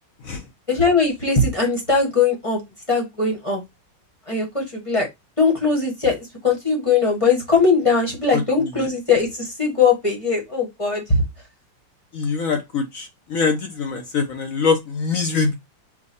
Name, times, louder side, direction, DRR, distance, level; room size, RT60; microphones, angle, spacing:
voice 1, 0.7-2.6 2.9-3.6 4.3-5.1 5.4-11.2, left 4 dB, 20° left, 1.0 m, -20 dB
voice 2, 8.3-8.9 12.1-15.6, left 5 dB, 65° left, 0.9 m, -24 dB
4.8 x 2.2 x 4.0 m
omnidirectional pair, 2.0 m